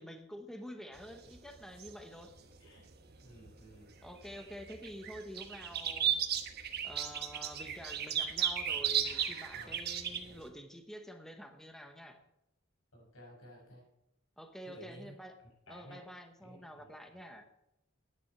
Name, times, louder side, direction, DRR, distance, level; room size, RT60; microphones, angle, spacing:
voice 1, 0.0-2.3 4.0-6.2 6.8-12.2 14.4-15.4 15.7-17.5, equal, ahead, 6 dB, 0.9 m, -48 dB
sound 1, 1.0-3.5 3.9-10.4, right 9 dB, 50° right, 1.1 m, -35 dB
voice 2, 3.2-3.9 9.5-9.8 10.1-10.4 12.9-13.8 14.6-15.1 15.7-16.0 16.4-17.2, right 1 dB, 90° left, -1 dB, 5.9 m, -54 dB
10.5 x 9.7 x 5.7 m, 0.85 s
head